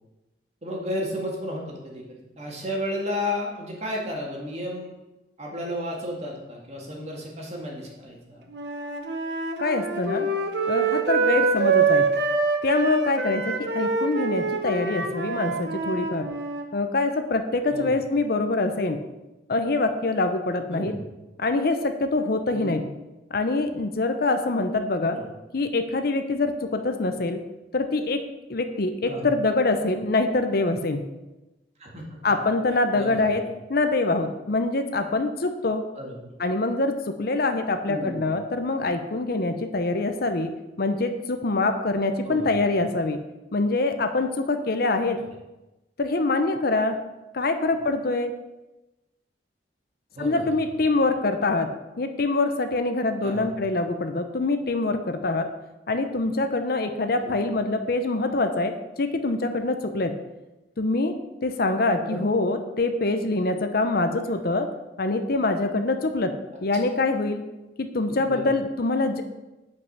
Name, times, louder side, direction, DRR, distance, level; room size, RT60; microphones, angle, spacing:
voice 1, 0.6-4.9 5.4-8.5 17.7-18.0 20.7-21.0 22.5-22.8 25.1-25.3 29.1-29.3 31.8-32.0 32.9-33.5 35.9-36.3 37.9-38.4 42.3-42.5 45.2-45.3 47.7-47.8 50.1-50.6 53.2-53.5 57.2-57.4 62.0-62.2 68.3-68.5, left 1 dB, 40° right, -2 dB, 2.1 m, -33 dB
Wind instrument woodwind instrument, 8.5-16.6, right 4 dB, 75° right, 1.0 m, -25 dB
voice 2, 9.6-10.3 10.7-12.1 12.6-16.3 16.7-19.0 19.5-20.9 21.4-22.8 23.3-25.2 25.5-27.4 27.7-28.2 28.5-31.0 32.2-33.4 33.7-35.8 36.4-40.5 40.8-43.2 43.5-45.2 46.0-47.0 47.3-48.3 50.2-51.7 52.0-55.5 55.9-60.1 60.8-61.1 61.4-64.7 65.0-66.3 66.6-67.4 67.8-69.2, left 2 dB, 60° left, 7 dB, 0.7 m, -24 dB
8.2 x 5.4 x 6.0 m, 1.0 s
head